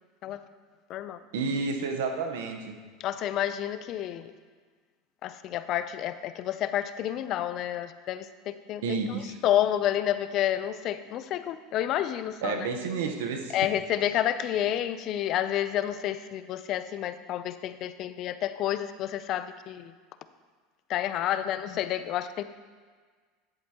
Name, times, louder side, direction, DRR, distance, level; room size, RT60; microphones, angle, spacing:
voice 1, 1.3-2.8 8.8-9.4 12.4-13.6, right 4 dB, 85° right, 5 dB, 1.0 m, -30 dB
voice 2, 3.0-4.3 5.2-12.7 13.5-19.9 20.9-22.4, left 11 dB, 50° left, 12 dB, 0.5 m, -30 dB
10.5 x 8.1 x 2.9 m, 1.5 s
supercardioid pair, 110°, 0 cm